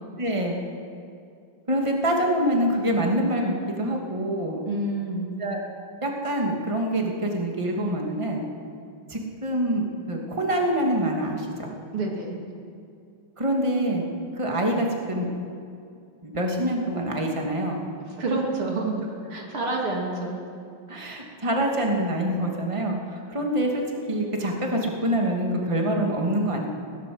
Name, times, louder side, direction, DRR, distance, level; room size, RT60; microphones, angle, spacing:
voice 1, 0.2-0.6 1.7-4.6 5.4-5.6 6.0-8.4 9.1-11.7 13.4-14.0 14.3-15.3 16.2-17.8 20.9-26.7, right 1 dB, 15° right, 1 dB, 2.5 m, -25 dB
voice 2, 4.6-5.3 11.9-12.4 18.1-19.0 19.3-20.4, right 2 dB, 85° right, -1 dB, 4.0 m, -28 dB
20.5 x 18.0 x 7.9 m, 2.4 s
omnidirectional pair, 2.3 m